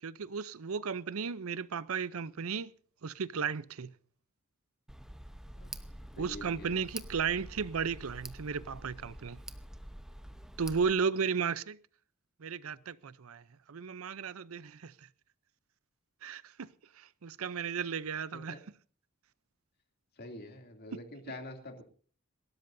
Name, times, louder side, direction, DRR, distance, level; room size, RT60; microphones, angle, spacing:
voice 1, 0.0-2.7 3.0-3.9 6.2-9.4 10.6-11.8 12.4-15.1 16.2-16.7 17.0-18.6 21.3-21.4, right 6 dB, 90° right, 0.6 m, -34 dB
Tick, 4.9-10.9, right 1 dB, 5° right, 0.8 m, -47 dB
voice 2, 6.1-6.8 18.3-18.6 20.2-21.8, left 1 dB, 50° left, 2.7 m, -46 dB
28.0 x 13.0 x 2.7 m
head